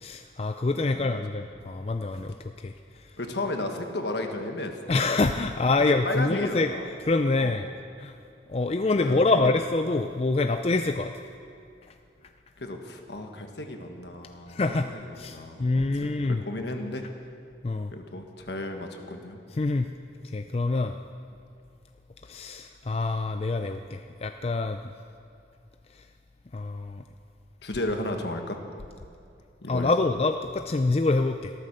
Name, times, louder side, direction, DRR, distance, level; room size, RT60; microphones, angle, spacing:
voice 1, 0.0-3.1 4.9-7.7 8.0-8.2 8.5-11.1 14.5-14.9 15.2-16.4 17.6-17.9 19.5-19.9 20.2-21.0 22.2-24.8 25.9-26.0 26.5-27.0 29.7-31.5, left 3 dB, 35° left, 7 dB, 0.4 m, -26 dB
voice 2, 3.2-4.8 5.8-6.9 7.4-7.6 9.0-9.5 12.6-17.0 17.9-19.4 27.6-28.6 29.6-29.9, left 1 dB, 70° left, 4 dB, 1.5 m, -34 dB
14.0 x 13.0 x 6.6 m, 2.5 s
head